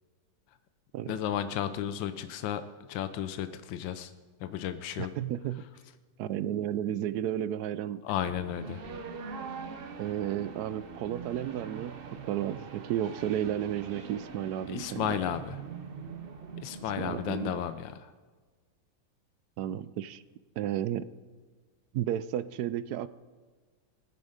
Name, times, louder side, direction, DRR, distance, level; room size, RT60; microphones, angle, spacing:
voice 1, 1.1-2.6 2.9-4.1 4.4-5.1 8.0-8.8 14.7-15.6 16.6-18.1, left 10 dB, 80° left, 10 dB, 1.4 m, -33 dB
voice 2, 5.0-5.6 6.2-8.0 10.0-15.2 17.0-17.5 19.6-20.2 20.6-21.1 21.9-23.1, right 11 dB, 70° right, 15 dB, 0.9 m, -33 dB
sound 1, 8.2-17.7, right 5 dB, 50° right, 0.6 m, -43 dB
20.5 x 9.4 x 5.0 m, 1.4 s
omnidirectional pair, 2.0 m